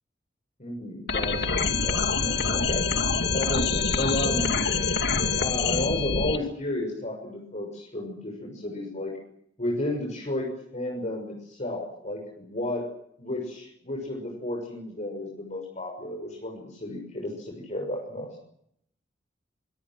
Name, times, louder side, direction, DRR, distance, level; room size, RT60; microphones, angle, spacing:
voice 1, 0.6-2.8 3.3-4.6 5.4-9.1 9.6-12.9 13.2-18.3, left 1 dB, 40° left, 0 dB, 6.8 m, -32 dB
sound 1, 1.1-6.4, left 4 dB, 65° left, 2.5 m, -25 dB
26.0 x 23.5 x 7.8 m, 0.72 s
head